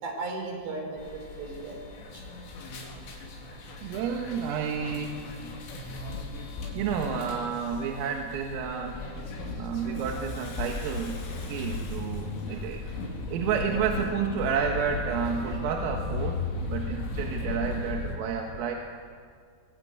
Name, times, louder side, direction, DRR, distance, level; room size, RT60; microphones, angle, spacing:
voice 1, 0.0-1.8 2.1-2.2 11.8-11.9 17.5-17.6, right 3 dB, 60° right, 2 dB, 6.7 m, -36 dB
sound 1, 1.0-18.1, left 3 dB, 75° left, 6.4 m, -36 dB
voice 2, 3.8-5.2 6.8-9.0 9.5-11.2 11.5-12.8 13.1-16.4 16.7-18.8, right 7 dB, 85° right, 2 dB, 4.2 m, -30 dB
Bathtub (filling or washing), 9.9-14.5 15.0-15.1, left 3 dB, 90° left, 7.7 m, -48 dB
24.0 x 22.5 x 9.5 m, 2.2 s
omnidirectional pair, 5.8 m